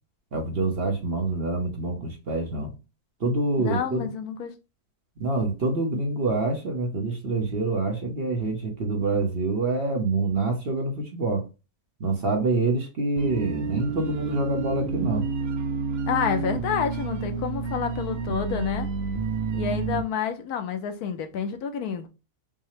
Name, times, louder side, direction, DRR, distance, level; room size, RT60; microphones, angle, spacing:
voice 1, 0.3-2.7 3.2-4.1 5.2-11.5 12.0-15.2, right 3 dB, 45° right, 1.0 m, -26 dB
voice 2, 3.6-4.5 16.1-18.9 19.5-22.1, left 7 dB, 80° left, 1.2 m, -29 dB
sound 1, 13.2-20.0, right 5 dB, 65° right, 0.6 m, -29 dB
5.6 x 2.1 x 3.1 m
omnidirectional pair, 1.6 m